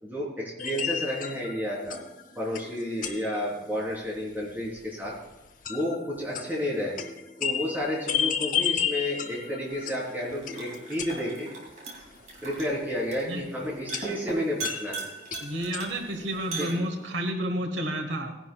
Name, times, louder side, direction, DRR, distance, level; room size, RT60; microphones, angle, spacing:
voice 1, 0.0-2.0 2.4-5.2 5.7-6.9 7.4-11.5 12.4-15.0 16.6-16.8, equal, 10° right, -5 dB, 3.5 m, -31 dB
sound 1, 0.6-4.2 4.4-4.5 4.8-4.9 5.5-11.7 12.1-12.2 13.9-16.4, left 8 dB, 45° left, 0.8 m, -33 dB
sound 2, 9.3-17.3, right 3 dB, 45° right, 2.6 m, -40 dB
voice 2, 15.4-18.3, right 1 dB, 90° right, 5 dB, 1.2 m, -30 dB
18.0 x 10.5 x 2.3 m, 0.97 s
head